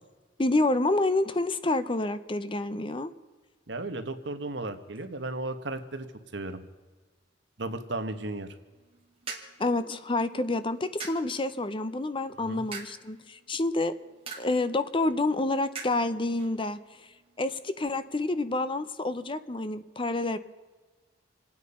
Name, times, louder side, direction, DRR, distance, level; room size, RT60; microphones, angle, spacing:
voice 1, 0.4-3.1 9.6-13.9 14.4-16.8 17.4-20.4, left 2 dB, 25° left, 12 dB, 0.6 m, -28 dB
voice 2, 3.7-6.1 6.3-6.6 7.6-8.5 12.4-12.6, right 2 dB, 60° right, 8 dB, 1.3 m, -34 dB
sound 1, 8.7-18.2, right 5 dB, 30° right, 2.2 m, -47 dB
27.5 x 9.4 x 5.5 m, 1.3 s
head